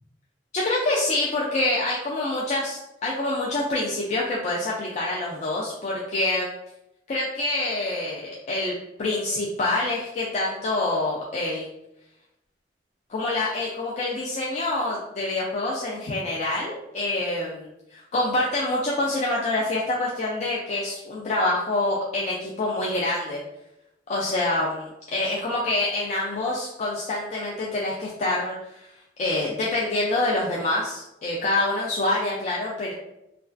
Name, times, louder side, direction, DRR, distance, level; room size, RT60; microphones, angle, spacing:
voice 1, 0.5-6.5 7.1-11.7 13.1-23.4 24.1-28.9 29.2-32.9, left 2 dB, 40° left, -5 dB, 0.3 m, -26 dB
2.3 x 2.3 x 2.4 m, 0.88 s
head